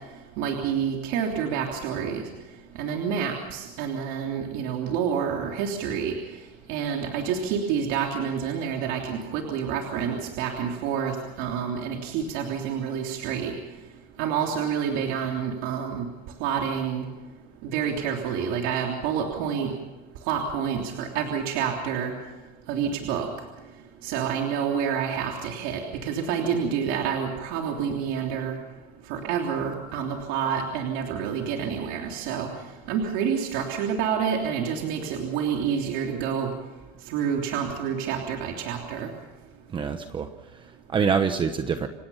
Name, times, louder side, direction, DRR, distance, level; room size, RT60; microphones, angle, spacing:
voice 1, 0.4-2.2 2.7-6.1 6.7-13.5 14.2-16.0 16.4-17.0 17.6-19.7 20.3-22.1 22.7-23.3 24.0-28.5 29.1-32.5 32.9-36.5 37.1-39.1, right 7 dB, 70° right, 1 dB, 3.3 m, -28 dB
voice 2, 39.7-41.9, right 6 dB, 25° right, 8 dB, 1.1 m, -26 dB
28.5 x 17.0 x 5.8 m, 1.2 s
cardioid pair, 155°, 21 cm